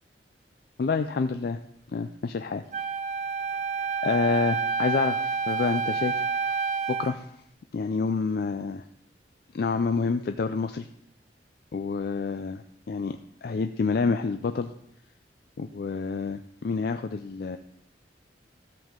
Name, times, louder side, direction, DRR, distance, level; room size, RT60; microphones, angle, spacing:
voice 1, 0.8-1.6 1.9-2.6 4.0-6.2 6.9-7.3 7.7-8.8 9.5-10.9 11.7-14.7 15.6-17.6, left 4 dB, 55° left, 8 dB, 0.4 m, -28 dB
Wind instrument woodwind instrument, 2.7-7.2, right 5 dB, 40° right, 0.4 m, -29 dB
13.0 x 7.3 x 3.7 m, 0.75 s
head